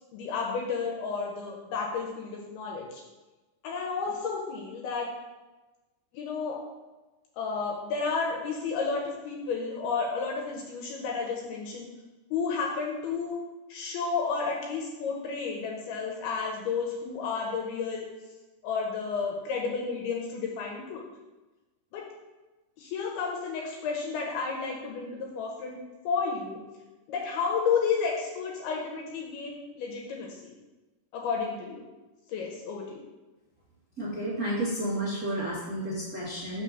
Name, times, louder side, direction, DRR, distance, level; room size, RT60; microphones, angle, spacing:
voice 1, 0.1-3.0 3.6-5.1 6.1-6.6 7.3-11.9 12.3-13.4 13.7-18.1 18.6-21.0 21.9-22.0 22.8-25.8 26.0-26.6 27.1-30.5 31.1-31.8 32.3-33.0, left 5 dB, 75° left, -1 dB, 2.5 m, -31 dB
voice 2, 34.0-36.6, right 1 dB, 80° right, -11 dB, 0.7 m, -31 dB
5.8 x 3.7 x 5.7 m, 1.2 s
omnidirectional pair, 4.8 m